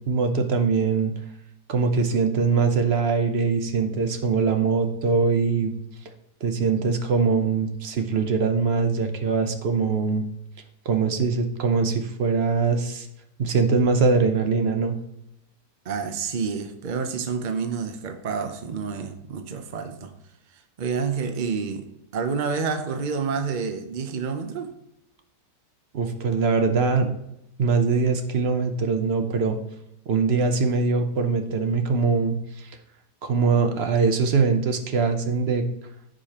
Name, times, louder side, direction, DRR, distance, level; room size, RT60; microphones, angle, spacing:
voice 1, 0.1-1.1 1.7-5.7 6.4-10.3 10.8-13.1 13.4-15.0 25.9-27.1 27.6-29.6 30.1-32.7 33.2-35.7, right 4 dB, 50° right, 6 dB, 0.8 m, -22 dB
voice 2, 15.8-20.1 20.5-21.9 22.1-24.7, right 5 dB, 75° right, 6 dB, 0.4 m, -29 dB
14.5 x 5.1 x 2.9 m, 0.82 s
omnidirectional pair, 1.9 m